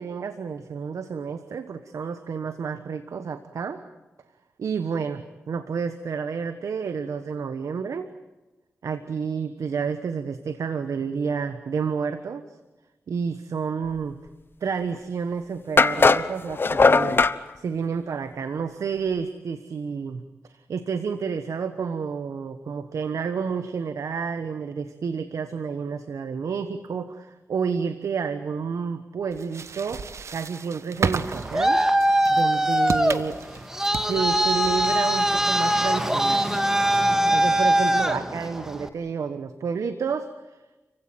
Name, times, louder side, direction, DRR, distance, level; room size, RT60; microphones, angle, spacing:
voice 1, 0.0-3.8 4.6-5.2 5.5-8.1 8.8-12.4 13.1-14.2 14.6-17.2 17.6-30.0 30.3-31.8 32.3-33.4 33.9-36.5 37.3-40.6, right 6 dB, 85° right, 10 dB, 1.3 m, -30 dB
sound 1, 14.9-15.0 15.8-17.4, left 4 dB, 45° left, 1.1 m, -18 dB
sound 2, 29.3-36.6, right 5 dB, 65° right, 1.2 m, -34 dB
Traffic noise roadway noise, 31.2-38.9, right 1 dB, 10° right, 1.9 m, -22 dB
30.0 x 16.0 x 9.3 m, 1.1 s
wide cardioid pair, 80°, 5 cm